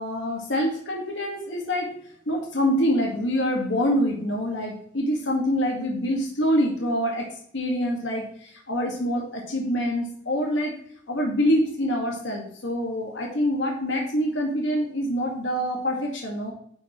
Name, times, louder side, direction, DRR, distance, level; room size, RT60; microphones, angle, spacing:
voice 1, 0.0-1.9 2.3-7.3 7.5-10.7 11.1-16.5, equal, 80° left, -1 dB, 2.0 m, -25 dB
10.5 x 5.8 x 3.2 m, 0.64 s
head